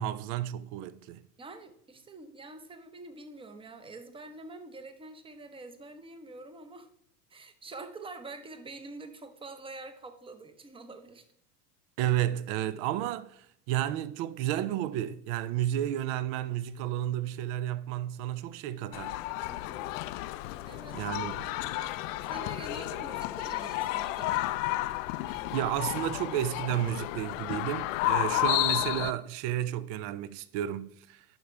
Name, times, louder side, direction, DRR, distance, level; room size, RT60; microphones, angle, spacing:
voice 1, 0.0-1.2 12.0-19.2 20.9-21.5 25.3-31.2, right 12 dB, 45° right, 0.6 m, -32 dB
voice 2, 1.4-6.9 7.3-11.2 19.5-19.9 20.6-21.1 22.2-24.6, right 3 dB, 10° right, 0.8 m, -46 dB
sound 1, 18.9-29.1, left 17 dB, 55° left, 0.6 m, -32 dB
10.5 x 5.9 x 3.3 m
hypercardioid pair, 110°, 47 cm